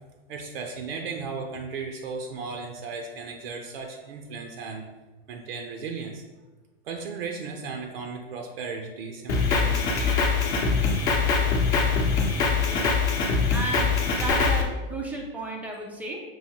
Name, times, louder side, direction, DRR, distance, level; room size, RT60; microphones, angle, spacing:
voice 1, 0.3-4.8 5.3-6.2 6.8-10.0, right 4 dB, 75° right, 3 dB, 0.6 m, -35 dB
Drum kit, 9.3-14.6, left 4 dB, 35° left, 0.7 m, -23 dB
voice 2, 12.6-13.0 13.5-16.2, right 1 dB, 5° right, 0 dB, 0.3 m, -34 dB
5.6 x 2.7 x 2.8 m, 1.2 s
supercardioid pair, 135°, 29 cm